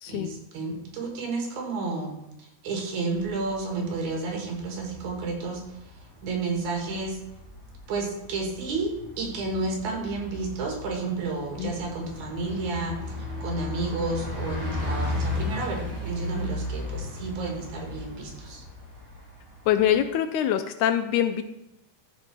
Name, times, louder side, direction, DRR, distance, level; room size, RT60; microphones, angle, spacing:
voice 1, 0.1-7.2 7.9-13.0 13.4-18.6, right 3 dB, 65° right, 1 dB, 3.0 m, -31 dB
Bus, 3.0-20.1, left 2 dB, 10° right, 2.8 m, -36 dB
voice 2, 19.7-21.4, left 10 dB, 80° left, 9 dB, 1.8 m, -24 dB
13.5 x 4.6 x 4.5 m, 0.88 s
omnidirectional pair, 3.7 m